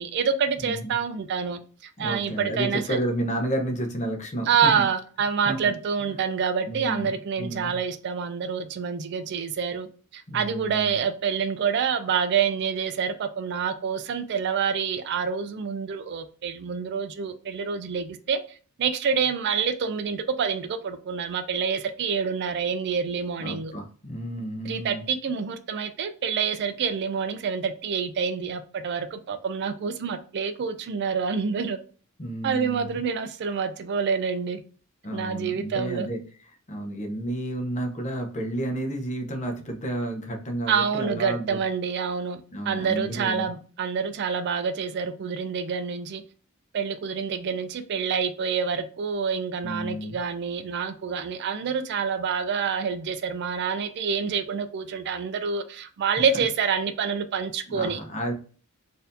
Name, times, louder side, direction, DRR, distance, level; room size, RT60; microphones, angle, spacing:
voice 1, 0.0-2.8 4.5-9.9 10.1-18.4 18.8-23.7 24.6-31.8 32.4-34.6 35.1-36.1 40.7-42.4 42.7-46.2 46.7-58.0, right 6 dB, 50° right, 0.4 m, -27 dB
voice 2, 0.6-0.9 2.0-4.8 5.4-5.6 6.0-6.1 6.7-7.8 10.3-10.9 23.4-25.0 32.2-33.0 35.0-36.2 36.7-41.6 42.5-43.5 49.6-50.2 57.7-58.3, right 1 dB, 35° left, 0.8 m, -31 dB
4.0 x 2.7 x 2.6 m
head